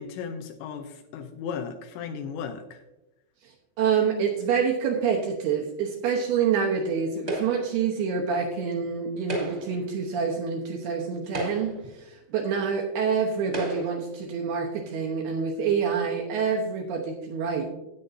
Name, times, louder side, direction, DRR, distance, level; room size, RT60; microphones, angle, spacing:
voice 1, 0.0-2.8, left 6 dB, 80° left, 6 dB, 2.8 m, -36 dB
voice 2, 3.8-11.7 12.3-17.8, right 6 dB, 75° right, 0 dB, 2.5 m, -27 dB
sound 1, 7.3-7.8 9.2-9.8 10.7-10.8 11.2-11.9 12.8-12.9 13.5-14.1, right 1 dB, 25° right, 1.3 m, -33 dB
13.0 x 9.0 x 2.7 m, 0.94 s
omnidirectional pair, 5.6 m